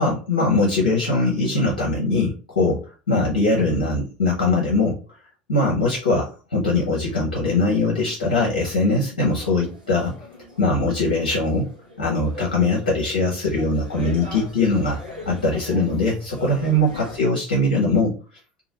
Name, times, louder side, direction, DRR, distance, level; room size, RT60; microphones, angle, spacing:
voice 1, 0.0-5.0 5.5-10.1 10.6-11.7 12.0-15.0 15.3-18.1, left 2 dB, 75° left, -4 dB, 0.9 m, -21 dB
sound 1, 9.2-17.2, left 2 dB, 80° right, 0.8 m, -41 dB
2.9 x 2.4 x 2.8 m, 0.35 s
figure-of-eight pair, 65°, 5 cm